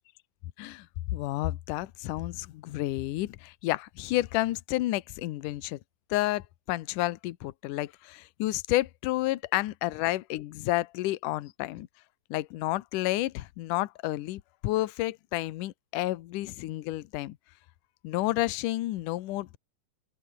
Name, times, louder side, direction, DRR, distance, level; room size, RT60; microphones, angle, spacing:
voice 1, 0.6-5.8 6.1-11.9 12.3-17.4 18.0-19.6, left 17 dB, 70° left, 2.4 m, -30 dB
open air
omnidirectional pair, 4.0 m